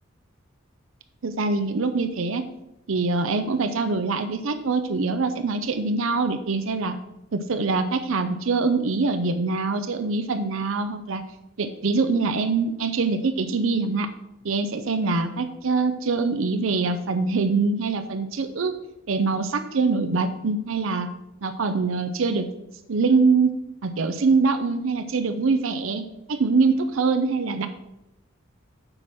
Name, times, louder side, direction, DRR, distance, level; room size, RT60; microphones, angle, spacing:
voice 1, 1.2-2.4 2.9-7.0 7.3-11.2 11.6-14.1 14.4-18.7 19.1-21.1 21.4-22.5 22.9-23.5 23.8-27.7, right 4 dB, 70° right, 9 dB, 0.6 m, -24 dB
7.7 x 4.3 x 6.2 m, 0.87 s
head